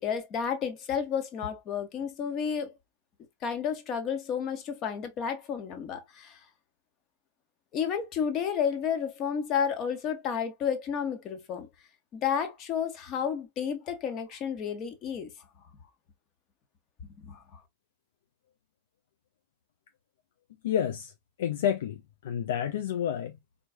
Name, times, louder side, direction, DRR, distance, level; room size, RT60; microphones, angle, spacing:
voice 1, 0.0-2.7 3.4-6.4 7.7-11.7 12.1-15.3 17.0-17.6, left 7 dB, 35° left, 1.4 m, -31 dB
voice 2, 20.6-21.1 21.4-22.0 22.2-23.3, left 9 dB, 60° left, 0.5 m, -29 dB
4.6 x 4.0 x 2.3 m
figure-of-eight pair, 90°, 0 cm